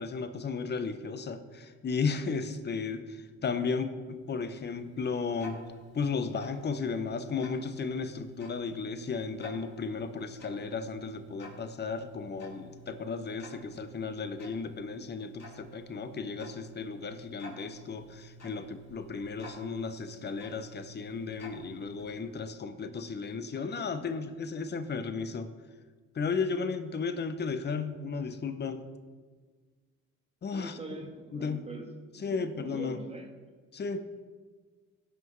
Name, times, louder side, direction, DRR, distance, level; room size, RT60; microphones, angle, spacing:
voice 1, 0.0-5.6 5.9-25.5 26.1-28.8 30.4-30.8 31.3-31.6 32.2-33.0 33.7-34.0, left 5 dB, 35° left, 10 dB, 0.8 m, -34 dB
Tick-tock, 4.1-22.4, right 1 dB, 55° left, 3.0 m, -51 dB
voice 2, 30.5-31.9 32.2-33.3, right 2 dB, 20° right, 2 dB, 1.6 m, -43 dB
17.5 x 5.8 x 3.1 m, 1.5 s
cardioid pair, 90°, 30 cm